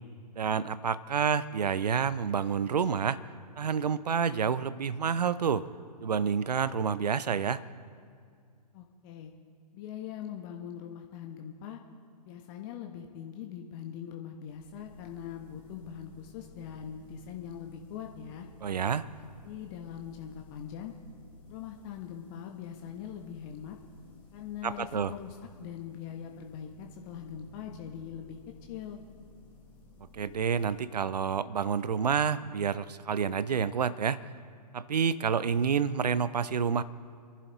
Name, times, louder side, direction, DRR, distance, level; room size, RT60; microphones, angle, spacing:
voice 1, 0.4-3.2 3.6-5.7 6.0-7.6 18.6-19.1 24.6-25.1 30.1-34.2 34.7-36.8, right 7 dB, 70° right, 16 dB, 0.6 m, -28 dB
voice 2, 8.7-9.3 9.7-11.8 12.2-18.5 19.1-20.9 21.5-23.8 24.3-28.4 28.7-29.0, left 9 dB, 30° left, 3 dB, 1.0 m, -42 dB
sound 1, 14.5-32.0, left 2 dB, 10° left, 3.8 m, -56 dB
26.5 x 11.5 x 3.0 m, 2.2 s
figure-of-eight pair, 120°, 21 cm